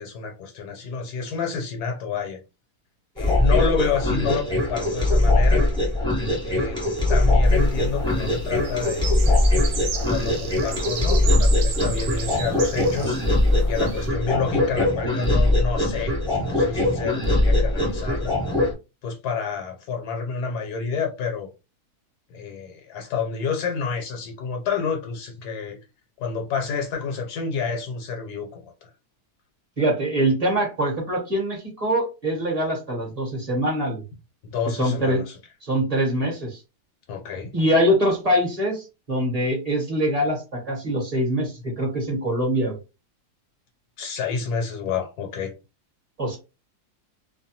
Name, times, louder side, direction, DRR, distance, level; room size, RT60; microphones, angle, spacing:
voice 1, 0.0-2.4 3.2-5.7 6.4-6.8 7.1-9.7 10.1-13.2 13.7-18.3 19.0-21.5 22.3-25.8 26.2-28.7 34.4-35.4 37.1-37.5 44.0-45.5, left 5 dB, 75° left, 1.2 m, -29 dB
sound 1, 3.2-18.7, left 1 dB, 5° left, 0.5 m, -21 dB
sound 2, 7.5-14.1, right 5 dB, 75° right, 1.1 m, -34 dB
voice 2, 29.8-34.0 34.7-35.2 35.6-36.6 37.5-42.8 46.2-46.4, equal, 30° right, 0.8 m, -23 dB
2.7 x 2.2 x 2.7 m
omnidirectional pair, 1.7 m